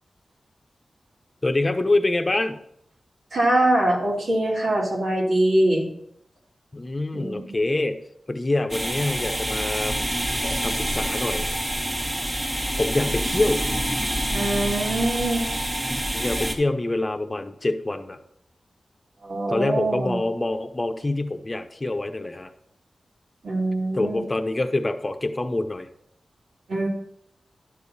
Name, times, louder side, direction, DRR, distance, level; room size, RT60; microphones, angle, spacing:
voice 1, 1.4-2.6 6.7-8.0 8.3-9.9 10.4-11.5 12.8-13.6 15.9-18.2 19.5-22.5 23.9-25.9, left 2 dB, 30° left, 7 dB, 0.9 m, -25 dB
voice 2, 3.3-5.9 7.1-7.6 14.3-15.5 19.2-20.2 23.4-24.2 26.7-26.9, right 1 dB, 80° right, -3 dB, 2.7 m, -23 dB
sound 1, 8.7-16.5, right 1 dB, 30° right, 1.6 m, -27 dB
11.0 x 6.9 x 4.2 m, 0.71 s
wide cardioid pair, 90°, 0 cm